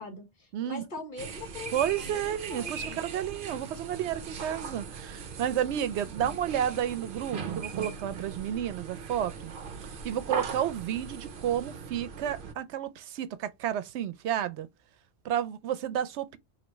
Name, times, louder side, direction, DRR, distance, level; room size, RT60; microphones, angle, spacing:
voice 1, 0.0-2.2 2.5-3.0, left 3 dB, 45° left, 1.5 m, -42 dB
voice 2, 0.5-0.8 1.7-9.5 10.0-14.7 15.2-16.4, right 10 dB, 85° right, 0.9 m, -31 dB
sound 1, 1.2-12.5, right 6 dB, 55° right, 0.8 m, -39 dB
3.0 x 2.8 x 4.3 m
omnidirectional pair, 1.1 m